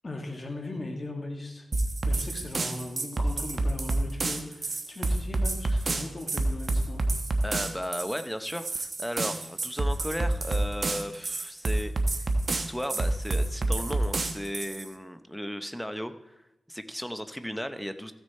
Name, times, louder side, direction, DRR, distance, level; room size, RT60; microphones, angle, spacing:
voice 1, 0.0-1.7 2.0-7.0, left 2 dB, 35° left, 2 dB, 1.9 m, -38 dB
sound 1, 1.7-14.9, right 2 dB, 45° right, 1.0 m, -28 dB
voice 2, 7.4-11.9 12.5-16.3 16.7-18.1, equal, ahead, 10 dB, 0.7 m, -35 dB
14.5 x 6.5 x 4.3 m, 0.95 s
wide cardioid pair, 80°, 0 cm